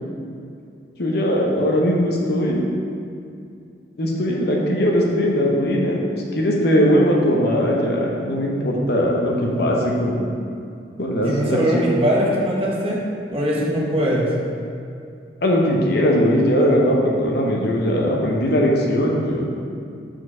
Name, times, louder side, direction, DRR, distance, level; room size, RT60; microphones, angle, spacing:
voice 1, 1.0-2.6 4.0-10.2 11.0-11.9 15.4-19.5, equal, 65° left, -2 dB, 0.8 m, -19 dB
voice 2, 11.2-13.0 13.3-14.3, equal, 35° right, -4 dB, 1.1 m, -21 dB
4.5 x 4.5 x 6.0 m, 2.5 s
head